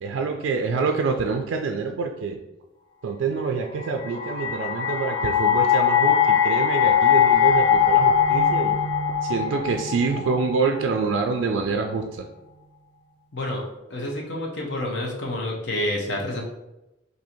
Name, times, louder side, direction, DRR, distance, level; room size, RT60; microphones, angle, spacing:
voice 1, 0.0-2.4 3.0-8.7 9.2-12.0, right 4 dB, 80° right, 3 dB, 0.3 m, -26 dB
sound 1, 3.8-10.9, left 7 dB, 25° left, 0.4 m, -21 dB
voice 2, 13.3-13.6 13.9-16.4, left 1 dB, 65° left, 0 dB, 0.7 m, -28 dB
2.7 x 2.6 x 4.3 m, 0.95 s
head